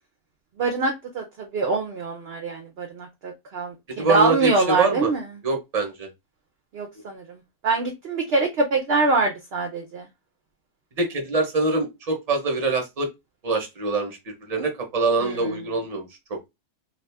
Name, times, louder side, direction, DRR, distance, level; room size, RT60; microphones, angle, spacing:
voice 1, 0.6-5.2 6.7-10.1 15.2-15.5, right 3 dB, 60° right, 0.7 m, -24 dB
voice 2, 4.0-5.1 5.4-6.1 11.0-13.1 13.4-16.5, right 3 dB, 30° right, 0.8 m, -24 dB
2.7 x 2.6 x 3.3 m
omnidirectional pair, 1.6 m